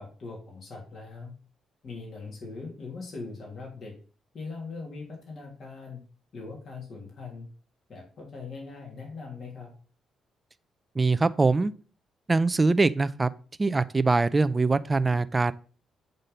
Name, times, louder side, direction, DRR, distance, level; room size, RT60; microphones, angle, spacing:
voice 1, 0.0-1.3 1.8-3.9 4.3-6.0 6.3-7.5 7.9-9.7, left 4 dB, 55° left, -1 dB, 2.9 m, -40 dB
voice 2, 11.0-11.7 12.3-13.3 13.6-15.5, right 3 dB, 25° right, 13 dB, 0.5 m, -23 dB
8.2 x 3.8 x 5.6 m, 0.39 s
supercardioid pair, 55°, 0 cm